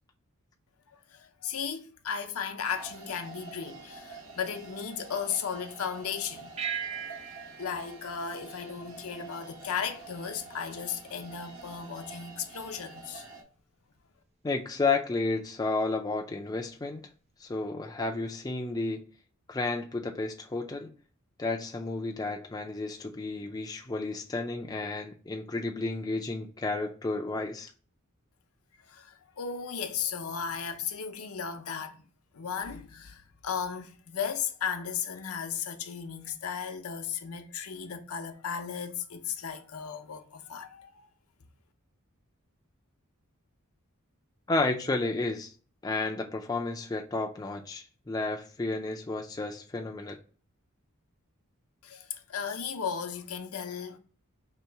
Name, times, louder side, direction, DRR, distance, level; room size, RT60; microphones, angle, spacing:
voice 1, 0.9-6.5 7.6-13.3 28.9-32.0 32.3-41.1 51.8-54.0, left 7 dB, 80° left, 0.6 m, -35 dB
sound 1, 2.7-13.4, right 3 dB, 65° right, 1.1 m, -48 dB
sound 2, 6.6-9.3, right 7 dB, 30° right, 0.5 m, -39 dB
voice 2, 14.4-17.1 17.4-19.0 19.5-20.9 21.4-27.7 44.5-45.5 45.8-50.2, left 3 dB, 15° left, 0.4 m, -32 dB
3.1 x 2.9 x 4.5 m
head